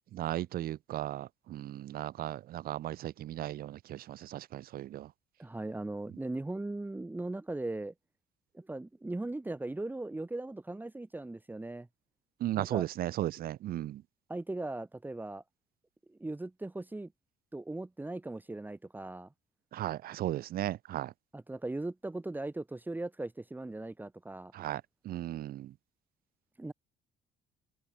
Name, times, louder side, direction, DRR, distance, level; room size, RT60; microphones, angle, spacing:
voice 1, 0.1-5.1 12.4-14.0 19.7-21.1 24.5-25.7, right 13 dB, 60° right, 0.8 m, -36 dB
voice 2, 5.4-7.9 8.5-11.9 12.6-12.8 14.3-15.4 16.1-17.1 17.5-19.3 21.3-24.5 26.6-26.7, right 2 dB, 10° right, 1.8 m, -38 dB
cardioid pair, 110°, 17 cm